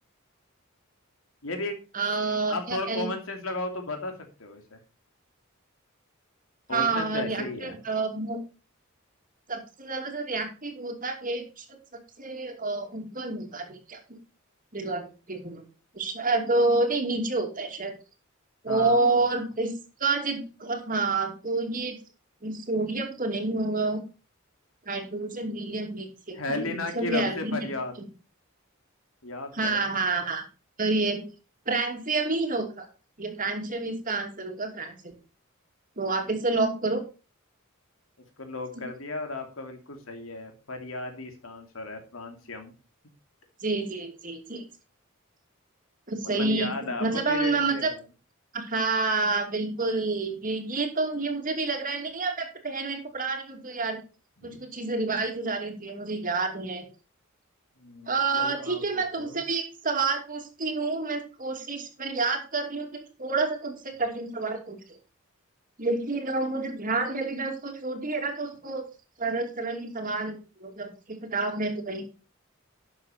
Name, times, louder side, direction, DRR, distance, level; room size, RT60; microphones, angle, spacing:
voice 1, 1.4-1.8 2.5-4.8 6.7-7.8 18.7-19.2 26.3-27.9 29.2-29.9 38.4-42.7 46.2-48.0 54.4-54.6 57.8-59.4, left 2 dB, 75° left, 5 dB, 2.8 m, -35 dB
voice 2, 1.9-3.1 6.7-8.4 9.5-11.7 11.9-14.2 14.7-15.6 15.9-17.9 18.6-19.7 20.0-22.0 22.4-24.0 24.9-27.6 29.5-30.4 30.8-31.2 31.7-32.9 33.2-35.1 36.0-37.0 38.7-38.8 43.6-44.6 46.1-47.9 48.5-54.0 54.4-56.9 58.1-65.0 65.8-68.9 69.2-72.0, right 3 dB, 40° right, 4 dB, 2.7 m, -29 dB
12.0 x 7.1 x 4.3 m, 0.33 s
head